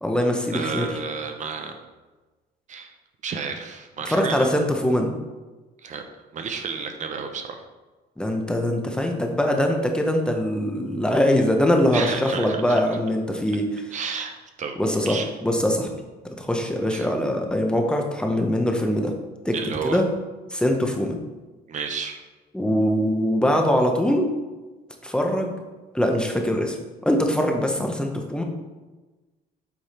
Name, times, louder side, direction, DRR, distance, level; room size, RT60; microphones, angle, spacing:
voice 1, 0.0-0.9 4.0-5.1 8.2-13.7 14.8-15.9 16.4-19.1 19.4-19.5 19.8-20.0 20.5-21.1 22.5-24.3 25.0-25.5 25.9-26.7 27.0-28.4, equal, 5° left, 2 dB, 0.8 m, -22 dB
voice 2, 0.5-1.8 2.7-2.9 3.2-4.4 5.8-6.0 6.3-7.6 11.9-12.8 13.9-15.3 16.9-17.1 19.5-20.0 21.7-22.2, right 5 dB, 45° right, 6 dB, 0.7 m, -31 dB
8.1 x 3.4 x 4.3 m, 1.2 s
cardioid pair, 110°, 17 cm